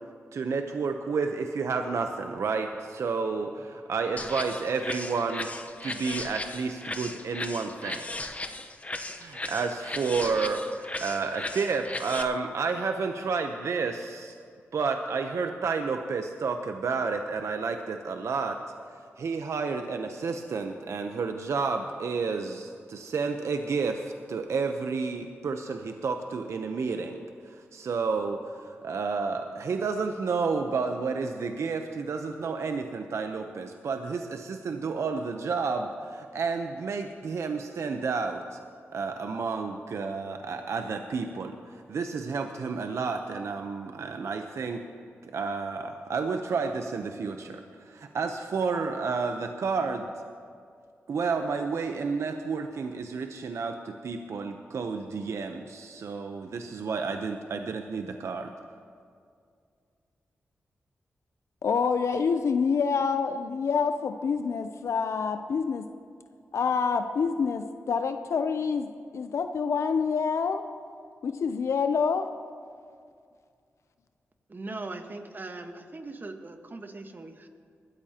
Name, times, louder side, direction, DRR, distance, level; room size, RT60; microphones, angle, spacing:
voice 1, 0.3-5.5 5.8-8.1 9.1-14.3 14.7-18.6 19.2-38.6 38.9-41.5 41.9-44.8 45.2-50.1 51.1-58.5, right 4 dB, 70° right, 6 dB, 0.7 m, -31 dB
sound 1, 4.2-12.2, left 2 dB, 30° left, 0.9 m, -37 dB
voice 2, 61.6-65.9 66.5-70.6 71.2-72.3, left 5 dB, 70° left, 8 dB, 0.5 m, -27 dB
voice 3, 74.5-77.5, right 2 dB, 40° right, 6 dB, 1.3 m, -40 dB
20.5 x 13.0 x 2.9 m, 2.2 s
cardioid pair, 50°, 5 cm